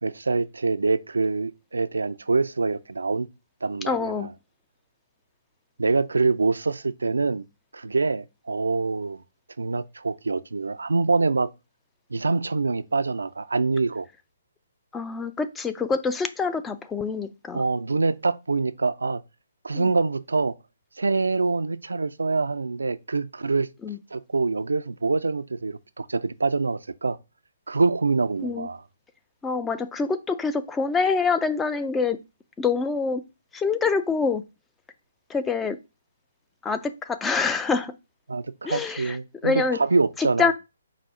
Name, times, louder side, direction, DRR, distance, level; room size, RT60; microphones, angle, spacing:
voice 1, 0.0-3.3 3.6-4.3 5.8-7.4 7.7-9.2 9.6-11.5 12.1-14.1 17.5-19.2 19.6-20.5 21.0-23.7 24.1-27.2 27.7-28.8 38.3-40.5, right 3 dB, 80° right, 0.3 m, -25 dB
voice 2, 3.9-4.3 14.9-17.6 19.7-19.9 23.8-24.0 28.4-28.7 29.4-32.2 32.6-33.2 33.5-34.4 35.3-35.8 36.6-37.9 38.6-39.2 39.4-39.8 40.2-40.5, left 4 dB, 10° left, 0.3 m, -25 dB
4.8 x 2.0 x 4.7 m
figure-of-eight pair, 140°, 0 cm